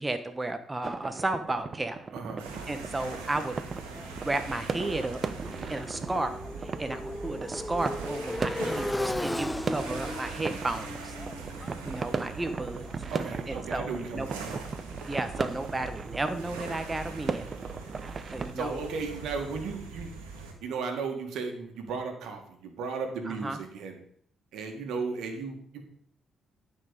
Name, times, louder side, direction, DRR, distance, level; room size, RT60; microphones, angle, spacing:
voice 1, 0.0-2.0 2.7-3.5 4.2-5.2 5.7-11.2 11.6-12.9 13.5-14.3 15.1-17.5 18.3-18.8 23.3-23.6, right 2 dB, 20° right, 8 dB, 1.0 m, -33 dB
sound 1, 0.8-18.5, right 4 dB, 45° right, 0.6 m, -38 dB
voice 2, 2.1-2.4 13.1-14.5 18.6-20.1 20.6-24.0 24.5-25.8, right 4 dB, 75° right, 4 dB, 1.9 m, -35 dB
sound 2, 2.4-20.5, right 4 dB, 90° right, 1.5 m, -42 dB
Motorcycle, 3.6-13.4, left 1 dB, 10° left, 0.5 m, -37 dB
10.5 x 5.6 x 5.2 m, 0.62 s
hypercardioid pair, 45°, 0 cm